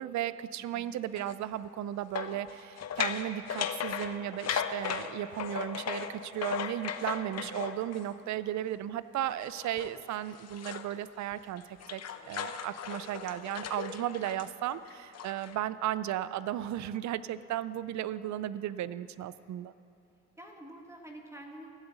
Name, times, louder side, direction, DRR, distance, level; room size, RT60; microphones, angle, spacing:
voice 1, 0.0-19.7, right 12 dB, 70° right, 16 dB, 0.5 m, -35 dB
sound 1, 1.2-1.4 2.2-8.1 9.4-10.9 11.3-15.6, left 8 dB, 55° left, 0.8 m, -37 dB
voice 2, 7.2-7.6 20.4-21.7, right 1 dB, 10° right, 1 dB, 1.5 m, -48 dB
14.5 x 7.9 x 8.2 m, 2.9 s
cardioid pair, 90°, 30 cm